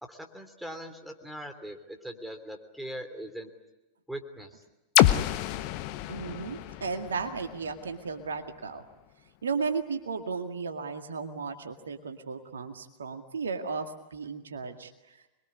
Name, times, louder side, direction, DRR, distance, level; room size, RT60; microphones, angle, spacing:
voice 1, 0.0-3.5 4.1-4.6, equal, ahead, 5 dB, 3.2 m, -41 dB
sound 1, 5.0-8.8, left 14 dB, 45° left, 1.2 m, -28 dB
voice 2, 6.1-8.8 9.4-15.3, right 5 dB, 70° right, 6 dB, 2.0 m, -35 dB
26.5 x 22.0 x 9.8 m, 1.0 s
figure-of-eight pair, 90°, 0 cm